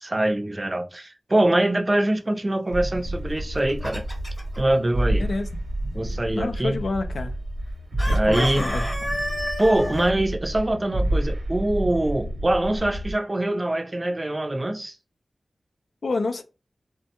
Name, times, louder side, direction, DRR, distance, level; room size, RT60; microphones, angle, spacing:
voice 1, 0.0-4.0 4.6-5.3 5.9-6.8 8.1-8.7 9.6-15.0, right 1 dB, 35° right, 0.4 m, -23 dB
sound 1, 2.7-13.1, right 1 dB, 90° right, 0.8 m, -29 dB
Chicken rooster, 3.4-4.6 8.0-10.1, equal, 15° left, 0.9 m, -31 dB
voice 2, 5.2-5.5 6.4-7.4 8.1-8.9 16.0-16.4, left 3 dB, 80° left, 0.3 m, -28 dB
3.4 x 2.1 x 2.8 m
wide cardioid pair, 60°, 0 cm